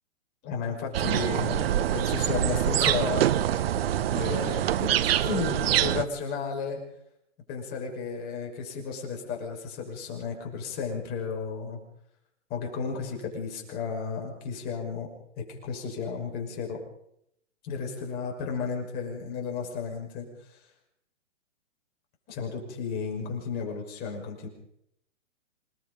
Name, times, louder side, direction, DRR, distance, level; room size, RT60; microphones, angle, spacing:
voice 1, 0.4-3.4 4.1-6.8 7.5-11.8 12.5-15.1 15.4-16.8 17.6-20.6 22.3-24.5, left 5 dB, 25° left, 1 dB, 5.9 m, -33 dB
sound 1, 0.9-6.1, right 11 dB, 50° right, 1.0 m, -25 dB
27.5 x 19.0 x 5.4 m, 0.76 s
hypercardioid pair, 145°, 37 cm